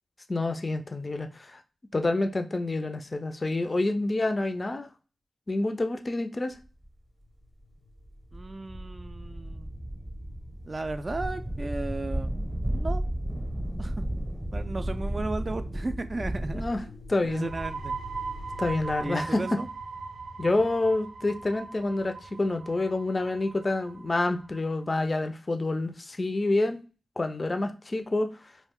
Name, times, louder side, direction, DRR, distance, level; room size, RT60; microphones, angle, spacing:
voice 1, 0.3-1.6 1.9-4.9 5.5-6.5 16.5-16.8 17.1-17.5 18.6-19.6 20.4-26.8 27.2-28.3, left 2 dB, 35° left, 7 dB, 0.4 m, -28 dB
sound 1, 6.8-6.9 7.6-7.7 8.0-19.0, right 1 dB, 10° right, 0.7 m, -34 dB
sound 2, 7.1-19.1, left 5 dB, 85° left, 0.5 m, -52 dB
voice 2, 8.3-9.7 10.6-12.3 12.7-13.0 13.8-14.0 14.5-16.6 17.2-18.0 19.0-19.7, right 2 dB, 40° right, 10 dB, 0.3 m, -35 dB
sound 3, 17.3-24.7, right 4 dB, 85° right, 0.6 m, -39 dB
2.3 x 2.0 x 3.5 m, 0.36 s
cardioid pair, 50°, 0 cm